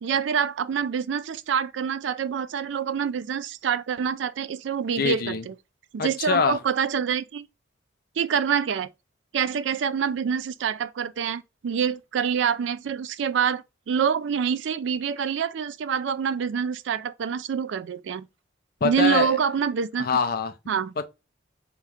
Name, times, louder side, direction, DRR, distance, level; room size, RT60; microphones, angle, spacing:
voice 1, 0.0-5.5 5.9-7.5 8.2-8.9 9.3-18.3 18.8-20.1 20.7-20.9, right 7 dB, 70° right, 0.3 m, -26 dB
voice 2, 5.0-5.4 6.0-6.6 18.8-19.4 20.0-20.5, left 5 dB, 50° left, 0.5 m, -24 dB
3.6 x 3.0 x 3.3 m
head